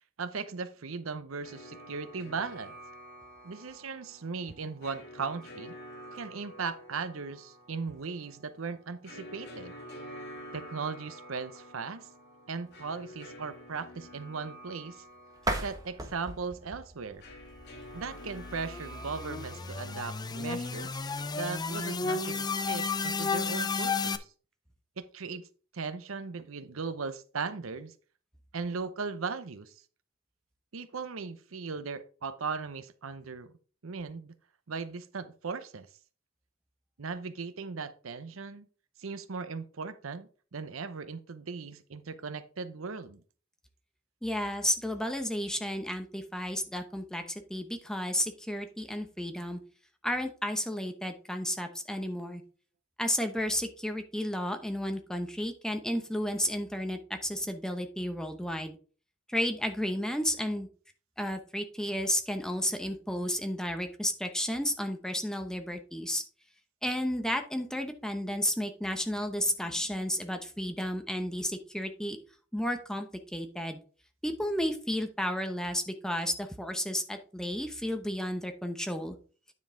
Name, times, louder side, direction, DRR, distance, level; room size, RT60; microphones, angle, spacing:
voice 1, 0.2-2.8 3.4-5.7 6.1-9.7 10.5-12.1 12.5-15.0 15.6-17.2 17.9-21.0 21.3-24.3 25.0-25.5 25.7-27.9 28.5-29.7 30.7-33.5 33.8-34.3 34.7-35.9 37.0-38.7 39.0-43.2, right 5 dB, 75° right, 0.7 m, -38 dB
sound 1, 1.4-20.3, equal, 55° left, 2.3 m, -49 dB
sound 2, 15.4-18.2, right 2 dB, 20° right, 1.2 m, -37 dB
sound 3, 17.8-24.2, left 4 dB, 20° left, 0.5 m, -33 dB
voice 2, 44.2-49.6 50.0-52.4 53.0-58.8 59.3-60.7 61.2-66.2 66.8-72.2 72.5-73.8 74.2-79.2, equal, 5° left, 0.9 m, -32 dB
9.5 x 5.3 x 3.7 m
head